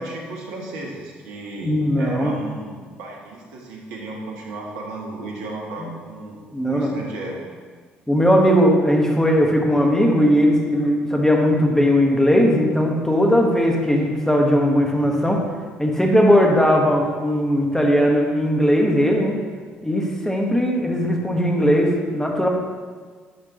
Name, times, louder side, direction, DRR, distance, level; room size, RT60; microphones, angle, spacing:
voice 1, 0.0-6.4 6.6-7.4, right 2 dB, 75° right, -1 dB, 1.4 m, -34 dB
voice 2, 1.6-2.3 5.8-5.9 6.5-6.9 8.1-15.5 15.8-19.3 19.8-22.5, equal, 10° left, 0 dB, 1.4 m, -18 dB
9.6 x 6.7 x 3.0 m, 1.5 s
hypercardioid pair, 50°, 5 cm